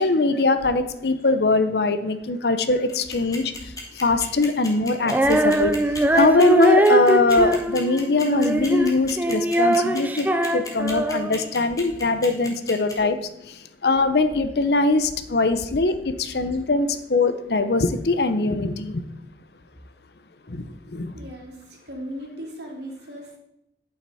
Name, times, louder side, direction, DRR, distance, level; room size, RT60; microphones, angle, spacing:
voice 1, 0.0-3.7 4.0-5.8 6.1-13.2 13.4-19.0 20.5-21.1, left 3 dB, 70° left, 10 dB, 0.7 m, -22 dB
sound 1, 2.9-12.9, left 4 dB, 20° left, 1.6 m, -35 dB
Female singing, 5.0-11.5, right 1 dB, 10° right, 0.4 m, -21 dB
voice 2, 21.1-23.4, equal, 75° right, 0 dB, 2.4 m, -37 dB
11.0 x 5.9 x 4.1 m, 0.83 s
head